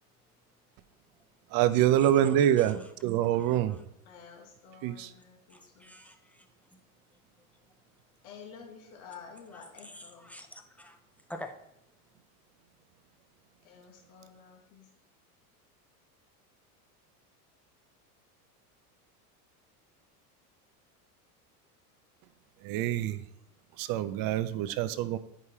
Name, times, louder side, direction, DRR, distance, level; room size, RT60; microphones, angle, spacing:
voice 1, 1.5-3.8 4.8-5.1 22.6-23.2 23.8-25.2, right 11 dB, 50° right, 13 dB, 0.5 m, -26 dB
voice 2, 2.4-2.9 3.3-3.8 5.5-6.8 9.8-11.0 11.3-11.5, left 1 dB, 5° left, 6 dB, 0.4 m, -47 dB
voice 3, 4.0-5.9 8.2-10.3 13.6-14.9, left 6 dB, 65° left, 0 dB, 1.4 m, -50 dB
9.2 x 4.9 x 2.8 m, 0.83 s
hypercardioid pair, 100°, 45 cm